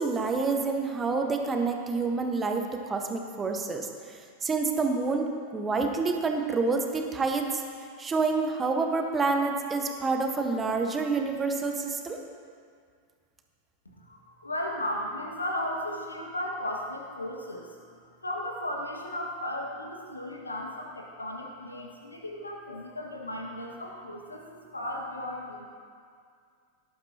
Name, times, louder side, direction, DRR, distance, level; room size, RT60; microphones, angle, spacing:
voice 1, 0.0-3.9 4.4-7.6 8.0-12.2, right 4 dB, 20° right, 3 dB, 1.2 m, -28 dB
voice 2, 14.0-18.0 18.2-25.6, left 1 dB, 80° left, 0 dB, 1.8 m, -35 dB
18.0 x 11.5 x 2.9 m, 2.2 s
figure-of-eight pair, 90°, 0 cm